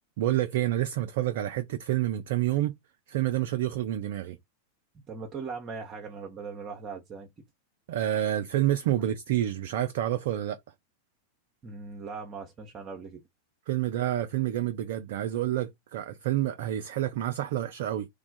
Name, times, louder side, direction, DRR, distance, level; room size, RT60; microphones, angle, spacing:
voice 1, 0.2-2.7 3.1-4.4 7.9-10.6 13.7-18.1, right 13 dB, 55° right, 0.3 m, -28 dB
voice 2, 5.1-7.4 11.6-13.2, right 5 dB, 25° right, 0.8 m, -39 dB
3.2 x 2.4 x 3.7 m
figure-of-eight pair, 90°, 0 cm